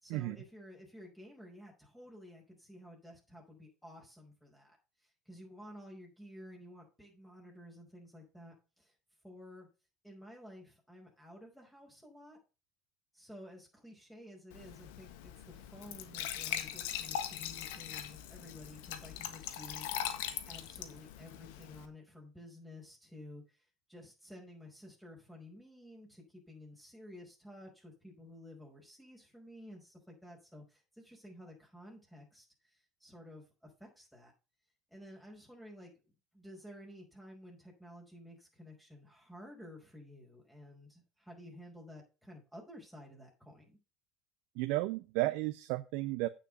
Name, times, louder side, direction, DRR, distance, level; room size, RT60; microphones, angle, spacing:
voice 1, 0.0-8.9 9.2-9.7 10.0-12.4 13.1-19.9 20.5-34.3 34.9-35.9 36.3-43.8, left 1 dB, 5° left, -1 dB, 5.4 m, -53 dB
Glass / Trickle dribble / Fill (with liquid), 14.5-21.9, left 10 dB, 75° left, 1.5 m, -41 dB
voice 2, 44.6-46.3, right 18 dB, 70° right, 11 dB, 0.7 m, -33 dB
9.0 x 7.5 x 5.1 m, 0.31 s
hypercardioid pair, 80°, 0 cm